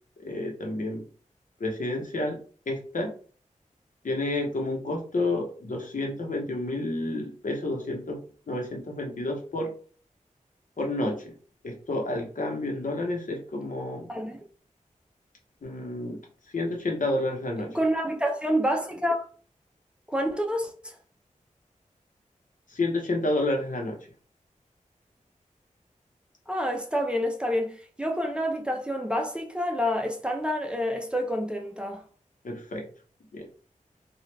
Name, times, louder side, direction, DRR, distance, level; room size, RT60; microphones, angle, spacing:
voice 1, 0.2-1.0 1.6-2.4 2.7-3.1 4.0-8.2 8.5-9.7 10.8-11.3 11.6-14.1 15.6-16.2 16.5-17.8 22.7-24.0 32.4-32.9 33.3-33.4, left 2 dB, 70° left, 0.9 m, -30 dB
voice 2, 14.1-14.4 17.7-19.2 20.1-20.9 26.5-27.7 28.0-32.0, equal, 5° right, 0.6 m, -28 dB
2.9 x 2.4 x 3.2 m
wide cardioid pair, 65°, 14 cm